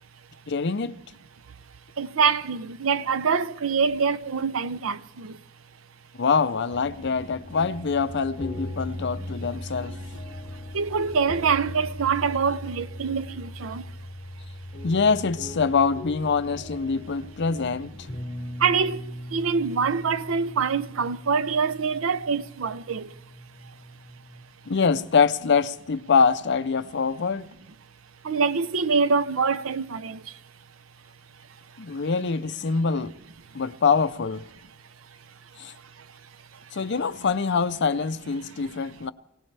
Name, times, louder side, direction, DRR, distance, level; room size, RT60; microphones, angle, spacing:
voice 1, 0.5-0.9 6.2-10.0 14.8-17.9 24.7-27.5 31.8-33.1 33.5-34.4 35.6-35.7 36.7-39.1, left 5 dB, 55° left, 0.6 m, -24 dB
voice 2, 2.0-5.3 10.7-13.8 18.6-19.0 19.3-23.1 28.2-30.2, right 5 dB, 70° right, 0.6 m, -25 dB
sound 1, 6.7-24.5, left 1 dB, 40° left, 2.5 m, -39 dB
24.5 x 17.5 x 3.4 m
head